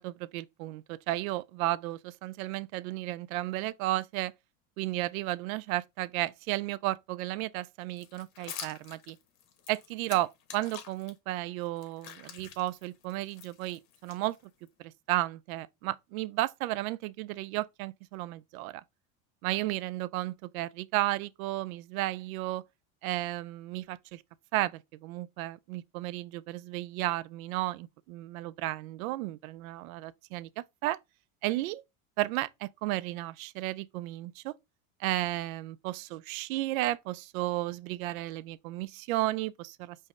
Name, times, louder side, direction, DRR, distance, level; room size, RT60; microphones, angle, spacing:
voice 1, 0.0-4.3 4.8-9.2 9.7-14.4 14.8-18.8 19.4-22.6 23.0-24.2 24.5-31.0 31.4-31.8 32.2-34.6 35.0-40.0, right 17 dB, 70° right, 0.5 m, -33 dB
sound 1, 7.9-11.1 11.6-14.7, left 8 dB, 55° left, 1.2 m, -47 dB
5.3 x 2.7 x 3.4 m
hypercardioid pair, 90°, 43 cm